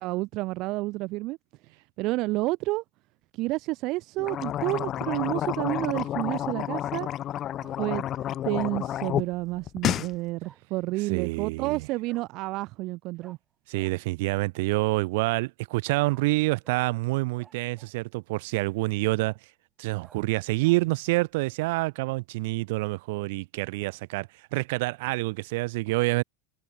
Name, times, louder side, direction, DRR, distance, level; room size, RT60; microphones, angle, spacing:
voice 1, 0.0-1.4 2.0-2.8 3.4-7.1 7.8-8.0 8.4-13.4, right 20 dB, 45° right, 0.5 m, -30 dB
sound 1, 4.2-9.3 9.6-10.1, left 12 dB, 35° left, 0.9 m, -30 dB
Bark, 6.2-6.4 6.9-7.1 7.6-7.8 8.2-8.4 9.9-10.0 10.4-10.6 12.0-12.3 13.2-13.4 13.8-13.9 16.0-16.2 16.6-16.8 17.4-18.0 18.5-18.6 19.2-19.4 20.0-20.2 20.6-20.8, right 6 dB, 20° right, 7.2 m, -56 dB
voice 2, 11.1-11.9 13.7-19.3 19.8-26.2, right 23 dB, 65° right, 0.9 m, -27 dB
supercardioid pair, 140°, 0 cm